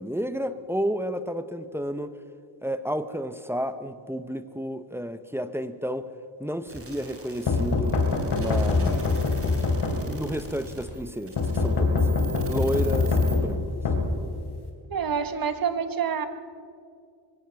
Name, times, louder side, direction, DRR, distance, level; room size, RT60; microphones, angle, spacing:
voice 1, 0.0-2.2 2.6-6.1 6.4-8.0 8.3-9.2 9.9-12.1 12.5-13.6, equal, 5° right, 12 dB, 0.7 m, -31 dB
sound 1, 6.7-13.4, right 2 dB, 30° right, 3.8 m, -42 dB
sound 2, 7.5-10.4 11.4-14.7, left 3 dB, 60° left, 3.0 m, -24 dB
voice 2, 14.9-16.3, right 7 dB, 50° right, 10 dB, 1.4 m, -27 dB
22.0 x 17.0 x 6.9 m, 2.3 s
wide cardioid pair, 145°, 45 cm